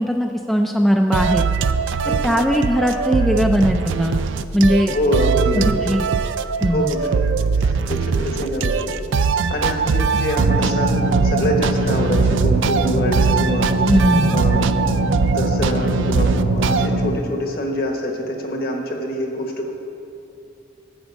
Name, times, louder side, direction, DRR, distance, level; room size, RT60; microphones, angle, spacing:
voice 1, 0.0-1.5 2.2-4.2 4.5-5.0 5.5-6.0 6.6-6.9 13.9-14.5, equal, ahead, 2 dB, 0.4 m, -19 dB
sound 1, 1.1-16.9, right 5 dB, 80° right, 0.4 m, -21 dB
voice 2, 2.0-2.5 4.9-5.9 6.7-7.1 7.5-8.9 9.5-13.7 14.3-14.7 15.2-19.7, equal, 50° left, 2 dB, 1.2 m, -25 dB
sound 2, 10.4-17.1, right 1 dB, 55° right, 1.0 m, -22 dB
8.8 x 6.1 x 8.1 m, 2.8 s
head